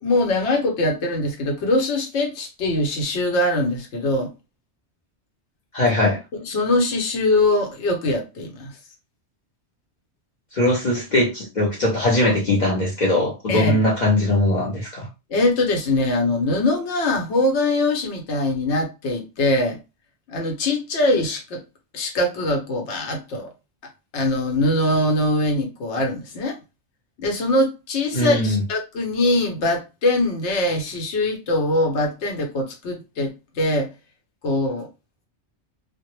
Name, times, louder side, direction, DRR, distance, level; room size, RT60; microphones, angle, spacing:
voice 1, 0.0-4.3 6.3-8.8 13.5-13.8 15.3-19.8 20.3-21.6 21.9-23.5 24.1-26.6 27.2-33.9 34.4-34.9, left 1 dB, 85° left, 1.0 m, -22 dB
voice 2, 5.7-6.2 10.5-15.1 28.1-28.6, left 1 dB, 50° left, 0.6 m, -20 dB
2.1 x 2.0 x 3.0 m
omnidirectional pair, 1.2 m